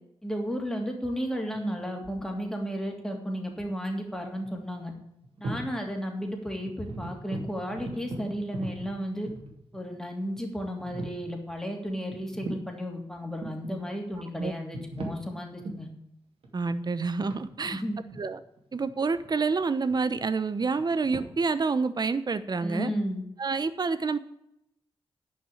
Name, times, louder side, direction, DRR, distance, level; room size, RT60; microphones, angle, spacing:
voice 1, 0.2-4.9 5.4-9.3 9.7-15.9 17.6-18.0 22.6-23.2, equal, 5° left, 1 dB, 2.9 m, -33 dB
sound 1, 1.5-2.4 4.1-4.2 4.4-4.7 5.2-5.8 6.1-6.2 6.6-9.8 10.4-10.5 10.8-11.2 12.1-12.7 13.2-13.7 14.5-15.2 15.6-15.9 16.4-19.5 19.8-21.2, right 1 dB, 70° right, 2.7 m, -39 dB
voice 2, 16.5-17.8 18.2-18.4 18.7-22.9 23.4-24.2, right 4 dB, 45° right, 12 dB, 0.9 m, -28 dB
10.5 x 5.8 x 8.6 m, 0.79 s
cardioid pair, 75°, 10 cm